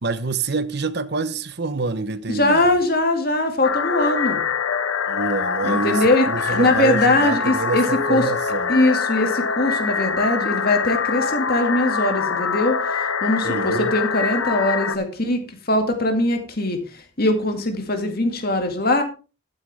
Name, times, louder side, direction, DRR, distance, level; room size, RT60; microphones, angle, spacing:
voice 1, 0.0-2.7 5.1-8.7 13.4-13.9, right 4 dB, 55° right, 0.8 m, -26 dB
voice 2, 2.3-4.4 5.6-8.2 8.7-15.4 15.7-16.8 17.2-19.0, left 2 dB, 50° left, 2.1 m, -21 dB
sound 1, 3.6-15.0, left 5 dB, 80° left, 0.8 m, -24 dB
11.0 x 9.5 x 3.5 m
head